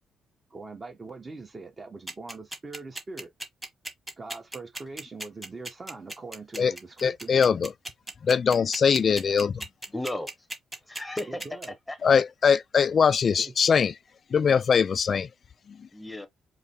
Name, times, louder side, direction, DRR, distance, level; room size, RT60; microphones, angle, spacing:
voice 1, 0.5-3.3 4.2-7.3 11.3-11.7 13.4-13.5, right 3 dB, 30° right, 1.1 m, -42 dB
sound 1, 2.1-11.7, right 1 dB, 10° right, 1.4 m, -36 dB
voice 2, 7.0-7.7 8.2-9.6 12.0-13.9 14.3-15.3, left 6 dB, 45° left, 0.3 m, -22 dB
voice 3, 9.9-10.5 10.8-12.2 15.9-16.3, left 1 dB, 10° left, 0.8 m, -35 dB
4.8 x 2.0 x 4.2 m
cardioid pair, 90°, 0 cm